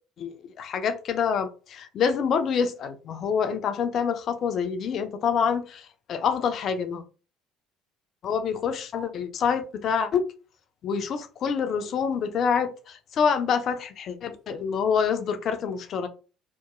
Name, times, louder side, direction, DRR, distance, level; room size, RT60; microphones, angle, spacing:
voice 1, 0.2-7.0 8.2-10.2 10.8-16.1, left 6 dB, 50° left, 0.4 m, -26 dB
2.8 x 2.2 x 2.4 m
hypercardioid pair, 60°, 0 cm